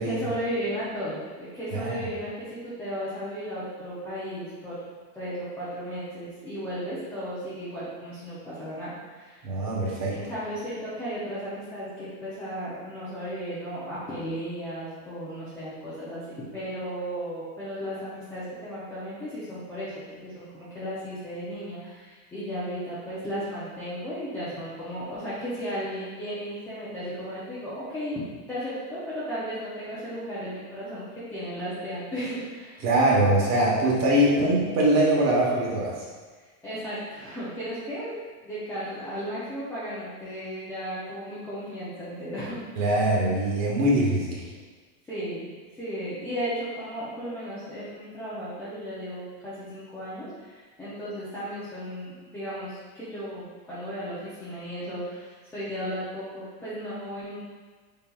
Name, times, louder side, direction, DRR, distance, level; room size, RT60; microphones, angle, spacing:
voice 1, 0.0-4.8 5.1-9.5 10.1-19.9 20.2-28.2 28.5-32.9 34.4-34.5 36.6-38.2 38.4-42.6 45.1-45.5 45.8-57.4, equal, 5° left, -13 dB, 0.3 m, -35 dB
voice 2, 9.4-10.1 32.8-36.0 42.8-44.4, right 1 dB, 35° right, -4 dB, 1.0 m, -22 dB
4.1 x 3.8 x 2.3 m, 1.4 s
supercardioid pair, 145°, 46 cm